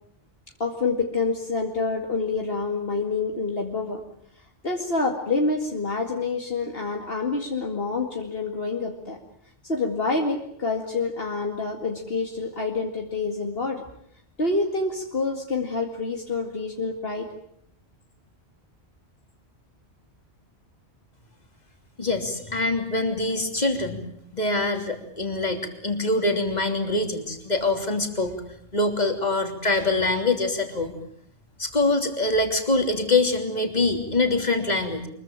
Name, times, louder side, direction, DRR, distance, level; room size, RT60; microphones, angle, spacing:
voice 1, 0.6-4.0 4.6-9.2 9.7-13.8 14.4-17.3, left 3 dB, 60° left, 2 dB, 2.5 m, -27 dB
voice 2, 22.0-24.0 24.3-28.4 28.7-30.9 31.6-35.1, left 2 dB, 40° left, 5 dB, 3.3 m, -24 dB
24.0 x 22.5 x 9.0 m, 0.68 s
omnidirectional pair, 1.1 m